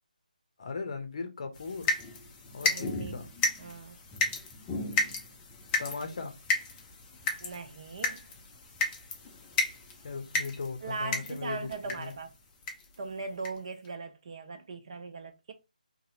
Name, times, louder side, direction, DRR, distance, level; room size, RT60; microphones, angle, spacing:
voice 1, 0.6-1.9 2.5-3.3 5.8-6.4 10.0-12.1, left 4 dB, 45° left, 0.7 m, -38 dB
sound 1, 1.5-12.2 12.6-12.9 13.4-13.5 13.8-13.9, left 3 dB, 15° left, 0.5 m, -33 dB
voice 2, 2.6-3.2 3.6-4.0 7.4-8.2 10.8-12.3 13.0-15.5, right 4 dB, 45° right, 0.6 m, -39 dB
2.7 x 2.7 x 2.6 m
figure-of-eight pair, 150°, 5 cm